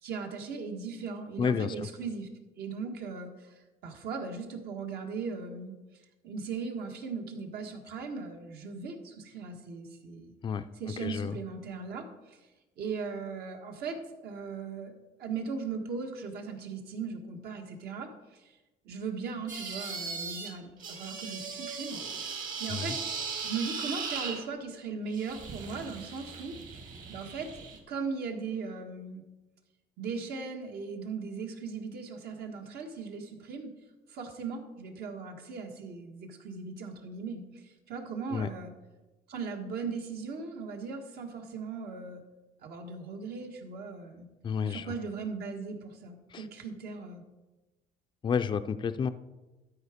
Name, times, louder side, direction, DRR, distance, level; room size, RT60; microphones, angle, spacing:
voice 1, 0.0-2.3 2.6-5.8 6.2-10.3 10.7-12.4 12.8-14.9 15.2-18.6 18.8-23.0 23.4-26.6 27.1-29.2 30.0-33.7 34.1-38.7 39.3-42.2 42.6-44.3 44.7-47.2, right 5 dB, 70° right, 3 dB, 1.6 m, -38 dB
voice 2, 1.4-1.7 10.4-10.6 11.0-11.4 22.7-23.0 38.3-38.5 44.4-44.9 46.3-46.4 48.2-49.1, left 6 dB, 30° left, 10 dB, 0.4 m, -30 dB
sound 1, 19.5-20.5 20.8-24.4 25.1-27.8, right 5 dB, 50° right, 2.0 m, -38 dB
12.5 x 4.8 x 5.1 m, 1.1 s
cardioid pair, 110°, 17 cm